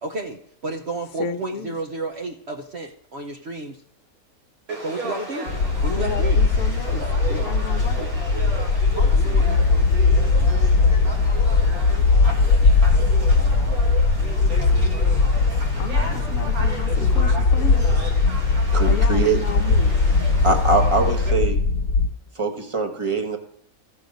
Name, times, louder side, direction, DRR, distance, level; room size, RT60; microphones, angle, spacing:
voice 1, 0.0-3.8 4.8-5.5 5.8-6.4, right 2 dB, 55° right, 4 dB, 1.0 m, -31 dB
voice 2, 1.2-1.7 5.9-8.1 15.8-17.9 18.9-19.9, left 5 dB, 60° left, 5 dB, 1.1 m, -33 dB
Conversation / Crowd, 4.7-21.3, right 2 dB, 75° right, 2.2 m, -34 dB
sound 1, 5.5-22.1, left 4 dB, 75° left, 1.2 m, -19 dB
voice 3, 18.7-19.4 20.4-21.6 22.4-23.4, right 3 dB, 25° right, 5 dB, 1.2 m, -22 dB
15.0 x 6.3 x 5.3 m, 0.65 s
omnidirectional pair, 1.5 m